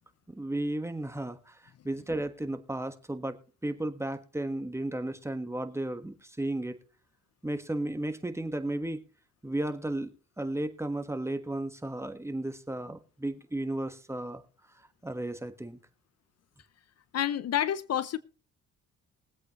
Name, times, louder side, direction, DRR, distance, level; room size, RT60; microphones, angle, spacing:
voice 1, 0.3-1.6 1.8-3.4 3.6-6.8 7.4-9.0 9.4-10.1 10.4-14.4 15.0-15.8, right 1 dB, 10° right, 1.4 m, -34 dB
voice 2, 17.1-18.2, left 10 dB, 55° left, 0.7 m, -28 dB
22.0 x 8.3 x 3.0 m
cardioid pair, 90°, 30 cm